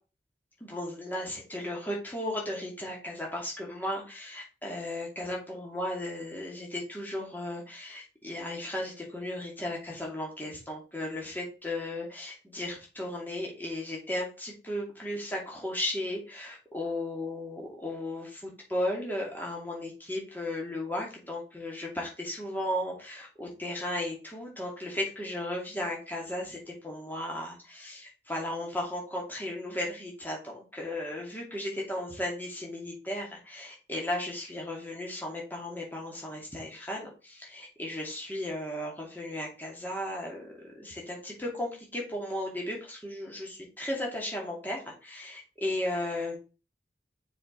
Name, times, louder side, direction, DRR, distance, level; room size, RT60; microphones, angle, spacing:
voice 1, 0.6-46.4, left 1 dB, 10° left, -2 dB, 2.4 m, -35 dB
6.9 x 5.0 x 3.9 m, 0.33 s
head